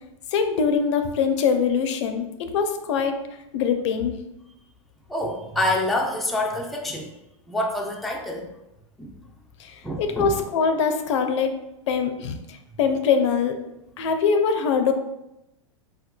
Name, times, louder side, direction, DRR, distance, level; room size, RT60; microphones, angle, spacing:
voice 1, 0.3-3.2 3.5-4.2 9.6-11.6 11.9-13.6 14.0-14.9, left 6 dB, 60° left, 7 dB, 0.4 m, -23 dB
voice 2, 5.1-7.1 7.5-8.5 9.0-9.1 9.8-10.3, left 1 dB, ahead, -1 dB, 0.4 m, -26 dB
4.3 x 2.2 x 2.2 m, 0.90 s
hypercardioid pair, 100°, 17 cm